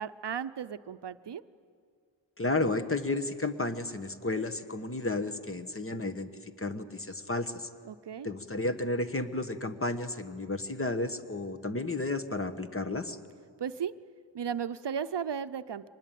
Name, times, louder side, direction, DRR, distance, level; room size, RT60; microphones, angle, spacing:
voice 1, 0.0-1.4 7.9-8.3 13.6-13.9 14.3-15.9, right 7 dB, 60° right, 11 dB, 0.7 m, -35 dB
voice 2, 2.4-7.7 8.2-13.2, left 2 dB, 30° left, 8 dB, 1.2 m, -32 dB
24.0 x 20.0 x 9.2 m, 2.1 s
wide cardioid pair, 75°, 47 cm